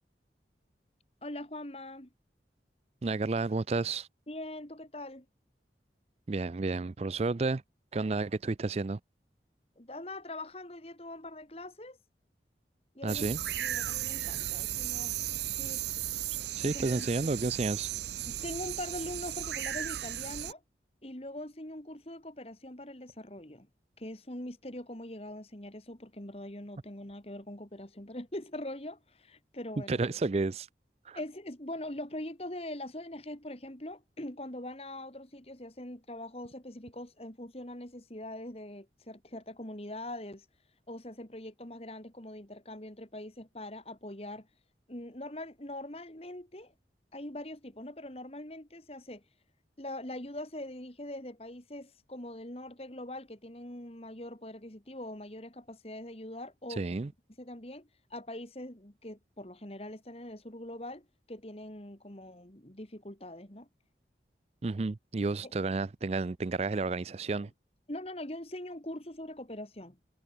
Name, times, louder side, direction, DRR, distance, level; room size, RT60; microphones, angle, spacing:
voice 1, 1.2-2.1 4.3-5.3 9.8-12.0 12.9-13.3 13.6-15.2 15.5-15.8 16.6-17.3 18.3-20.6 21.0-23.7 24.0-30.0 31.1-40.5 40.9-44.5 44.9-46.7 47.1-49.2 49.8-57.0 57.4-63.7 65.4-65.5 67.9-70.0, left 1 dB, 35° left, 2.7 m, -42 dB
voice 2, 3.0-4.1 6.3-7.6 7.9-9.0 13.0-13.4 16.6-17.9 29.9-30.7 31.1-31.2 56.8-57.1 64.6-67.5, right 3 dB, 35° right, 0.4 m, -31 dB
sound 1, 13.1-20.5, right 12 dB, 75° right, 0.7 m, -35 dB
head